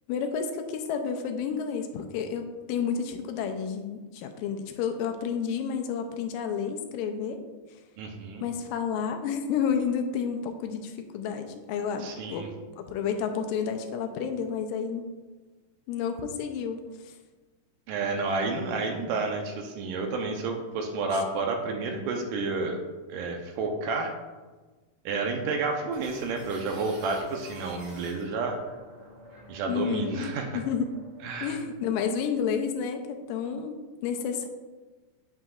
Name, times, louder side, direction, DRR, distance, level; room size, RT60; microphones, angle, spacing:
voice 1, 0.1-7.4 8.4-12.5 12.8-15.1 15.9-17.1 29.7-30.9 31.4-34.5, left 7 dB, 80° left, 6 dB, 2.3 m, -30 dB
voice 2, 8.0-8.4 12.0-12.5 17.9-22.8 23.1-24.1 25.1-28.6 29.5-30.6 31.2-31.6, right 3 dB, 80° right, 3 dB, 2.2 m, -30 dB
sound 1, 25.9-31.7, right 1 dB, 60° right, 3.8 m, -49 dB
8.6 x 7.6 x 2.4 m, 1.3 s
omnidirectional pair, 4.0 m